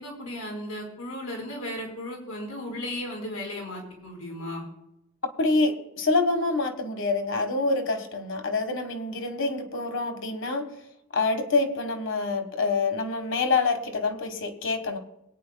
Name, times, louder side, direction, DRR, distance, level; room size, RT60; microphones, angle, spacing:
voice 1, 0.0-4.6, left 1 dB, 85° left, 0 dB, 4.5 m, -35 dB
voice 2, 5.4-10.7 11.1-15.0, left 3 dB, 60° left, 5 dB, 1.5 m, -26 dB
22.5 x 9.2 x 2.3 m, 0.83 s
head